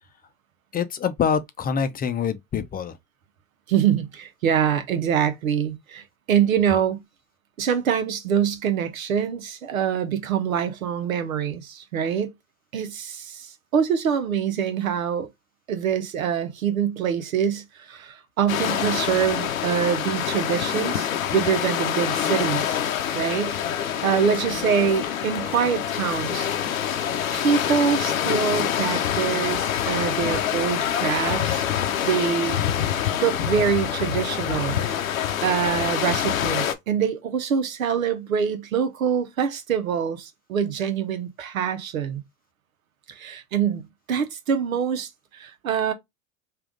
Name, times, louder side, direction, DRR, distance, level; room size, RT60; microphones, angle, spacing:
voice 1, 0.7-2.9, left 7 dB, 25° left, 0.5 m, -25 dB
voice 2, 3.7-7.0 7.6-12.3 12.7-15.3 15.7-22.8 23.1-23.5 23.8-26.5 27.3-31.7 32.0-32.6 33.2-35.1 35.4-42.2 43.1-45.9, right 8 dB, 90° right, 0.9 m, -25 dB
sound 1, 18.5-36.7, left 9 dB, 85° left, 0.7 m, -26 dB
3.4 x 2.5 x 3.7 m
hypercardioid pair, 85°, 40 cm